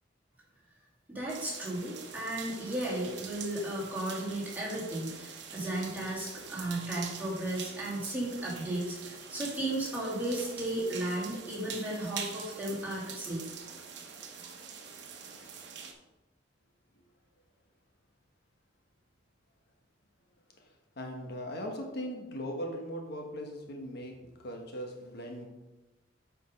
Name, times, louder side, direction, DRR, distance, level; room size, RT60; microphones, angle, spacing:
voice 1, 1.1-13.4, right 1 dB, 10° right, -6 dB, 2.8 m, -34 dB
sound 1, 1.3-15.9, right 6 dB, 60° right, 1.1 m, -45 dB
voice 2, 21.0-24.2 24.4-25.5, equal, 55° left, 2 dB, 1.2 m, -39 dB
8.2 x 5.1 x 5.2 m, 1.1 s
head